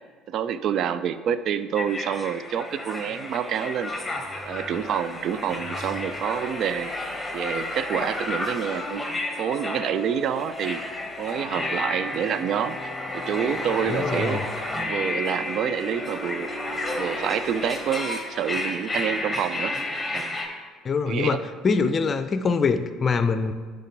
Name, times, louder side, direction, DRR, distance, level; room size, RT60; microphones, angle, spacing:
voice 1, 0.3-3.9 4.5-6.9 7.3-9.1 9.4-10.8 11.2-12.8 13.1-14.4 14.9-16.5 16.9-19.7 20.1-20.5 21.1-21.4, right 8 dB, 60° right, 13 dB, 0.4 m, -27 dB
sound 1, 1.7-20.5, left 1 dB, 10° left, 1.4 m, -31 dB
voice 2, 13.9-14.4 20.8-23.5, left 5 dB, 40° left, 10 dB, 0.5 m, -24 dB
10.5 x 3.6 x 4.5 m, 1.5 s
hypercardioid pair, 70°, 0 cm